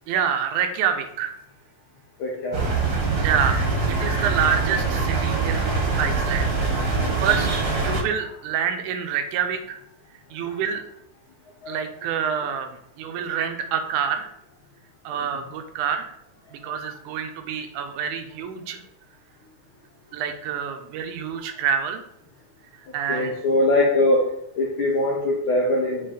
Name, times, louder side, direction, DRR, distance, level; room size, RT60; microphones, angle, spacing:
voice 1, 0.1-1.4 3.2-3.6 3.9-5.6 6.0-6.5 6.9-7.5 7.8-9.8 10.3-10.8 11.7-14.3 15.1-16.1 16.5-18.8 20.1-22.0 22.9-23.3, right 8 dB, 85° right, 6 dB, 2.2 m, -27 dB
voice 2, 2.2-2.7 7.3-7.4 23.1-24.3 24.6-26.1, left 1 dB, 75° left, -2 dB, 1.2 m, -22 dB
sound 1, 2.5-8.0, right 4 dB, 45° right, 1.4 m, -23 dB
6.5 x 4.0 x 3.9 m, 0.76 s
omnidirectional pair, 3.5 m